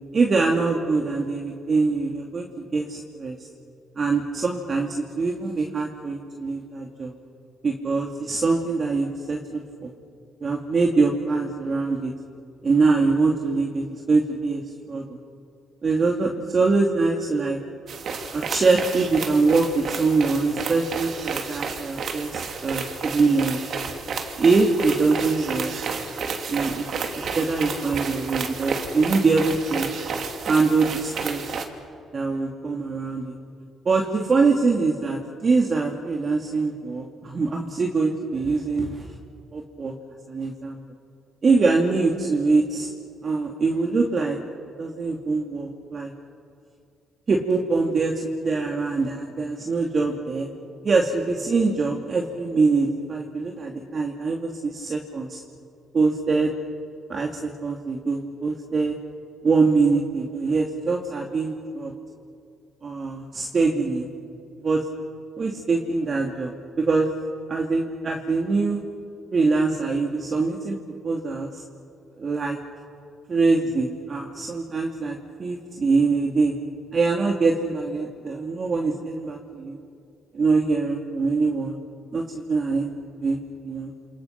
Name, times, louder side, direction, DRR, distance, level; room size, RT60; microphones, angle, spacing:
voice 1, 0.1-2.5 2.7-3.4 4.0-7.1 7.6-9.9 10.4-12.1 12.6-14.6 14.9-15.2 15.8-17.6 18.3-23.6 24.4-25.7 26.5-26.9 27.3-29.9 30.5-31.4 32.1-33.3 33.8-39.0 39.5-39.9 40.3-40.8 41.4-42.9 43.2-44.4 44.8-46.1 47.3-50.5 50.8-55.4 55.9-56.5 57.1-58.9 59.4-61.9 62.8-64.1 64.6-64.8 65.4-67.1 67.5-68.8 69.3-70.8 71.0-71.6 72.2-72.6 73.3-76.5 76.9-79.8 80.3-81.7 82.1-82.9 83.2-83.4 83.6-83.9, right 4 dB, 40° right, 0 dB, 2.8 m, -23 dB
sound 1, 17.9-31.6, right 5 dB, 60° right, 2.9 m, -31 dB
28.5 x 28.0 x 6.0 m, 2.5 s
cardioid pair, 90°, 0 cm